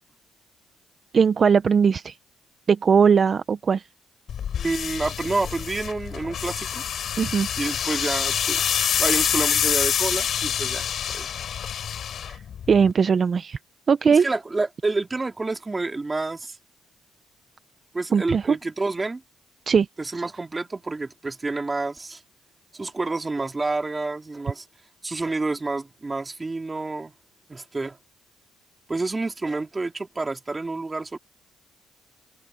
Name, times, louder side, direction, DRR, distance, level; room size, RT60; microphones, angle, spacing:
voice 1, 1.1-2.1 2.7-3.8 7.2-7.5 12.3-12.4 12.7-13.6 13.9-14.3 18.1-18.6 19.7-19.9, right 6 dB, 45° right, 0.8 m, -19 dB
sound 1, 4.3-12.9, left 9 dB, 60° left, 6.7 m, -26 dB
voice 2, 4.6-6.8 7.6-8.6 9.0-11.3 14.1-16.6 17.9-19.2 20.0-22.2 22.7-24.6 25.0-27.1 27.5-28.0 28.9-31.2, right 3 dB, 20° right, 3.1 m, -29 dB
cardioid pair, 95°, 0 cm